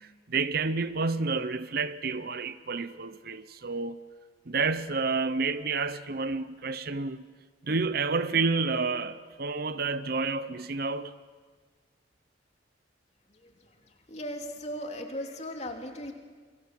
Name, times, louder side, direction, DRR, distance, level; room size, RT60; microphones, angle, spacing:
voice 1, 0.0-4.0 4.5-7.3 7.6-11.2, right 4 dB, 55° right, 0.8 m, -30 dB
voice 2, 14.1-16.1, equal, 35° left, 3.0 m, -37 dB
29.5 x 22.5 x 7.6 m
head